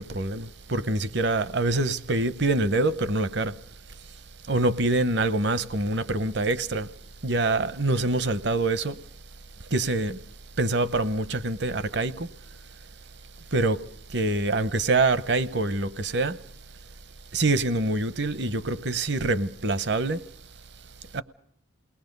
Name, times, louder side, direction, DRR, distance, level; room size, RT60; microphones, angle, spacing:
voice 1, 0.0-3.6 4.5-6.9 7.2-9.0 9.7-10.2 10.6-12.3 13.5-16.4 17.3-20.2 21.1-21.2, right 2 dB, 60° right, 0.8 m, -25 dB
29.0 x 20.0 x 5.4 m
head